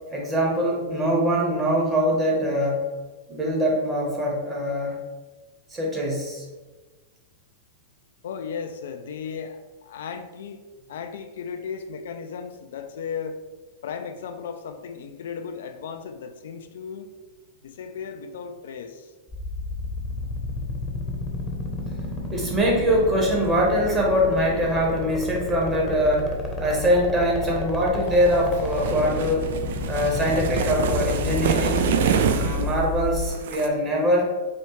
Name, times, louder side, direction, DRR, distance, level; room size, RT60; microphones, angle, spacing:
voice 1, 0.1-2.8 3.3-5.0 5.7-6.4 22.3-26.3 26.6-29.5 29.9-31.9 32.3-34.3, equal, 20° right, -2 dB, 1.2 m, -23 dB
voice 2, 8.2-10.6 10.9-13.4 13.8-17.1 17.6-19.1, left 6 dB, 70° left, 7 dB, 0.3 m, -35 dB
sound 1, 19.3-33.3, left 2 dB, 10° left, 0.8 m, -30 dB
sound 2, 28.2-32.8 33.2-33.7, right 7 dB, 70° right, 0.3 m, -26 dB
4.2 x 2.4 x 3.1 m, 1.3 s
hypercardioid pair, 105°, 0 cm